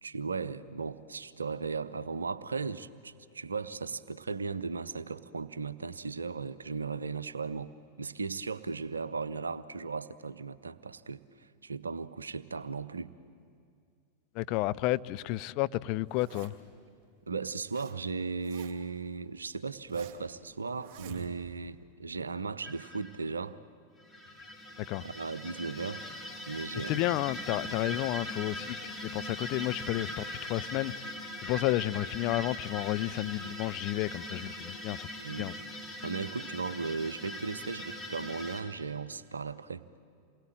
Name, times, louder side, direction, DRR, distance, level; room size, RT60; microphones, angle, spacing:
voice 1, 0.0-7.7 8.0-11.2 11.6-13.1 17.3-23.6 25.0-26.1 26.5-27.2 35.2-35.5 36.0-39.8, right 4 dB, 75° right, 0.8 m, -36 dB
voice 2, 14.3-16.5 24.9-25.0 26.9-31.1 31.4-35.1 35.4-35.5, left 17 dB, 45° left, 0.6 m, -31 dB
Zipper (clothing), 16.1-16.8 17.4-18.0 18.2-19.0 19.4-20.3 20.8-21.6, right 10 dB, 45° right, 2.8 m, -49 dB
sound 1, 22.6-23.1 24.0-38.6, left 1 dB, 15° left, 4.1 m, -41 dB
28.0 x 21.0 x 9.1 m
figure-of-eight pair, 90°, 0 cm